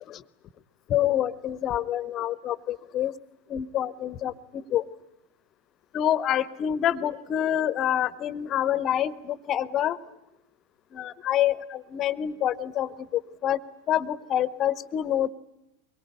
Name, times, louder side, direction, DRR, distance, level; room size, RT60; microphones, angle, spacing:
voice 1, 0.9-3.1 3.5-4.3 4.7-4.8 5.9-10.0 10.9-12.9 13.4-13.6 13.9-15.3, left 11 dB, 35° left, 17 dB, 1.3 m, -26 dB
24.5 x 22.5 x 9.8 m, 0.85 s
figure-of-eight pair, 90°, 0 cm